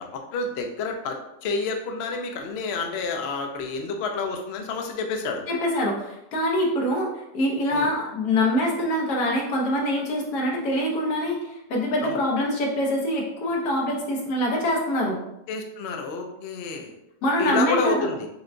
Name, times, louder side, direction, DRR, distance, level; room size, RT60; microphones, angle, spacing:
voice 1, 0.0-5.4 7.7-7.9 12.0-12.2 15.5-16.9 17.4-18.3, left 4 dB, 65° left, 3 dB, 0.6 m, -29 dB
voice 2, 5.5-15.2 17.2-18.1, left 1 dB, 85° left, -1 dB, 1.4 m, -24 dB
6.5 x 2.2 x 2.5 m, 0.86 s
omnidirectional pair, 1.7 m